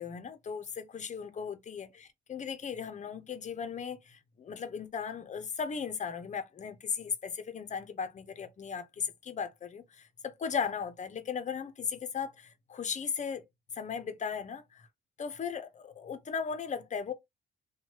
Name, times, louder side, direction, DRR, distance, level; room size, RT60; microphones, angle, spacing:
voice 1, 0.0-13.4 13.7-14.9 15.2-17.1, left 6 dB, 35° left, 0.6 m, -37 dB
3.0 x 2.2 x 2.8 m
cardioid pair, 90°, 20 cm